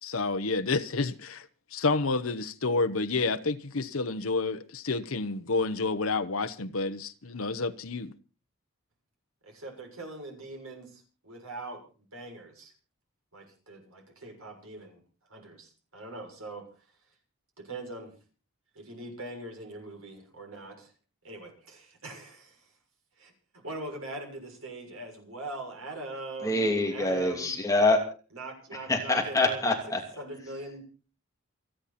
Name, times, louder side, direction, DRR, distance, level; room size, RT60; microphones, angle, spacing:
voice 1, 0.0-8.1, left 3 dB, 75° left, 1.0 m, -29 dB
voice 2, 9.4-12.7 13.3-15.0 15.3-16.6 17.6-18.1 18.7-20.9 21.2-22.7 23.2-23.3 23.6-27.5 28.3-29.7 30.2-30.8, right 2 dB, 80° right, 6.9 m, -42 dB
voice 3, 26.4-28.0 28.9-30.0, left 2 dB, 15° left, 2.8 m, -25 dB
29.0 x 10.0 x 4.3 m
head